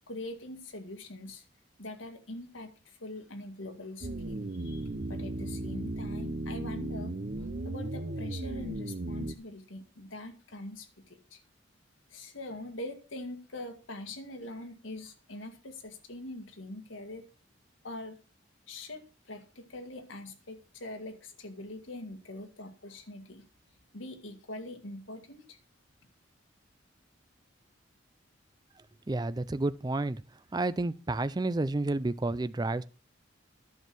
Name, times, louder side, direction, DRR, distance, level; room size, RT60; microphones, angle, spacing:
voice 1, 0.1-1.4 1.8-11.4 12.1-17.2 17.8-18.2 18.7-23.5 23.9-25.6, left 1 dB, 85° left, 1.9 m, -43 dB
sound 1, 4.0-9.3, right 2 dB, 45° right, 0.8 m, -36 dB
voice 2, 29.1-30.2 30.5-32.8, right 2 dB, 20° right, 0.4 m, -30 dB
11.0 x 6.5 x 6.1 m
head